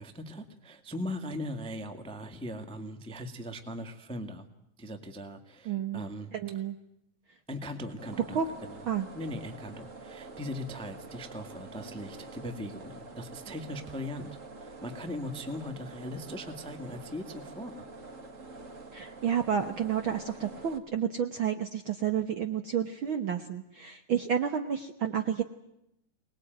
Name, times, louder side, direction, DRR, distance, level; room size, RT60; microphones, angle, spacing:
voice 1, 0.0-4.5 4.8-6.6 7.5-8.9 9.1-17.8, left 1 dB, 5° left, 7 dB, 0.9 m, -39 dB
voice 2, 5.7-6.0 6.3-6.7 8.3-8.5 8.9-9.1 18.9-25.4, right 8 dB, 60° right, 6 dB, 1.4 m, -30 dB
sound 1, 8.0-20.8, right 3 dB, 35° right, 1.5 m, -46 dB
24.5 x 20.0 x 9.2 m, 0.83 s
omnidirectional pair, 3.5 m